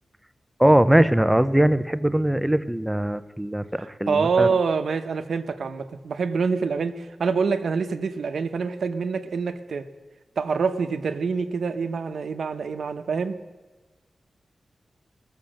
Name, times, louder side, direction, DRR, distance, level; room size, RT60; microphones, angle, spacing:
voice 1, 0.6-4.5, right 1 dB, 5° right, 13 dB, 0.5 m, -20 dB
voice 2, 4.1-9.9 10.4-13.3, right 5 dB, 85° right, 8 dB, 0.8 m, -26 dB
19.5 x 7.0 x 6.4 m, 1.3 s
wide cardioid pair, 110°, 0 cm